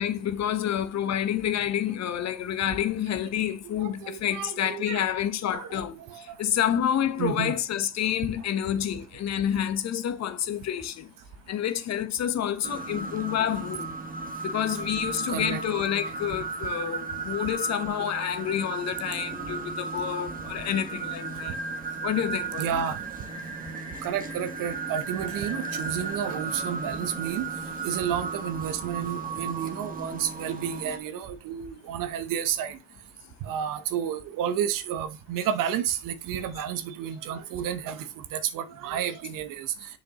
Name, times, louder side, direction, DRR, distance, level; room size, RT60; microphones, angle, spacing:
voice 1, 0.0-11.1 11.5-13.9 14.4-21.6 22.0-22.9, left 10 dB, 40° left, 1.0 m, -28 dB
voice 2, 3.8-5.0 5.5-6.2 7.2-7.6 15.3-15.6 16.1-16.2 22.6-23.0 24.0-27.5 27.7-32.8 33.4-39.7, right 9 dB, 50° right, 1.0 m, -31 dB
sound 1, 12.6-31.0, right 4 dB, 20° right, 1.4 m, -35 dB
7.2 x 4.9 x 3.0 m
hypercardioid pair, 75°, 40 cm